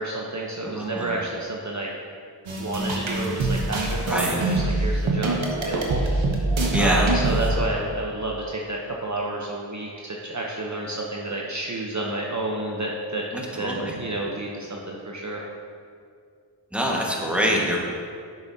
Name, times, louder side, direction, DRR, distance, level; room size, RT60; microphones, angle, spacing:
voice 1, 0.0-1.9 2.5-6.0 6.8-15.4, right 2 dB, 40° right, -2 dB, 0.9 m, -30 dB
voice 2, 0.7-1.0 4.1-4.3 6.7-7.1 13.6-13.9 16.7-17.8, equal, 5° right, -3 dB, 1.5 m, -24 dB
sound 1, 2.5-7.5, right 2 dB, 90° right, 1.1 m, -24 dB
9.6 x 7.0 x 2.8 m, 2.2 s
cardioid pair, 50°, 45 cm